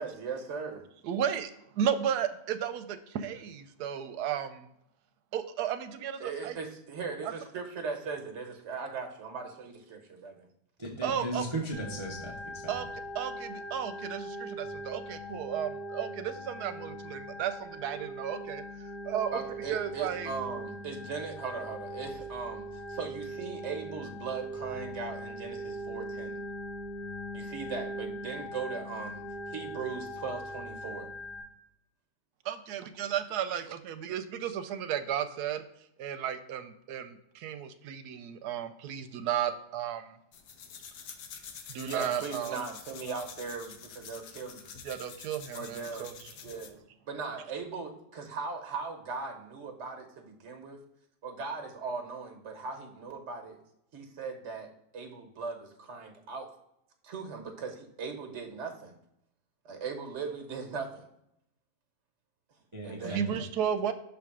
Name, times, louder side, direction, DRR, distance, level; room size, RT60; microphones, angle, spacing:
voice 1, 0.0-0.8 6.2-10.5 19.3-26.4 27.3-31.1 41.9-44.7 45.5-46.1 46.4-50.8 51.2-53.6 53.9-56.5 57.0-59.0 59.6-61.1 62.8-63.2, right 5 dB, 50° right, 4 dB, 1.3 m, -39 dB
voice 2, 1.0-4.7 5.3-6.6 7.2-7.3 11.0-11.5 12.7-12.9 13.1-19.4 19.7-20.3 32.4-35.6 36.0-40.2 41.7-42.6 44.8-46.1 63.0-63.9, right 9 dB, 85° right, 10 dB, 1.1 m, -34 dB
voice 3, 10.8-12.7 62.7-63.4, right 1 dB, 30° right, -2 dB, 0.6 m, -36 dB
Organ, 11.7-31.4, equal, 25° left, 0.8 m, -41 dB
sound 1, 40.3-46.8, left 7 dB, 75° left, 1.2 m, -47 dB
6.4 x 3.5 x 4.7 m, 0.78 s
omnidirectional pair, 1.7 m